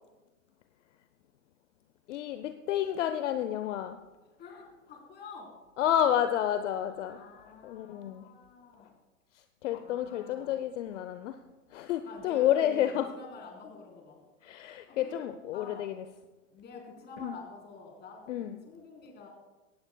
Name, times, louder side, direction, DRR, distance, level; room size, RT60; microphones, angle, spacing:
voice 1, 2.1-4.0 5.8-7.2 7.6-8.3 9.6-11.4 11.7-13.1 14.4-16.0 17.2-17.4 18.3-18.6, left 11 dB, 60° left, 10 dB, 0.8 m, -30 dB
voice 2, 4.4-5.5 6.9-8.9 9.8-10.6 12.0-14.2 14.9-15.2 15.5-15.9 16.5-19.3, left 4 dB, 25° left, 0 dB, 3.9 m, -48 dB
18.0 x 12.5 x 2.2 m, 1.1 s
hypercardioid pair, 120°, 41 cm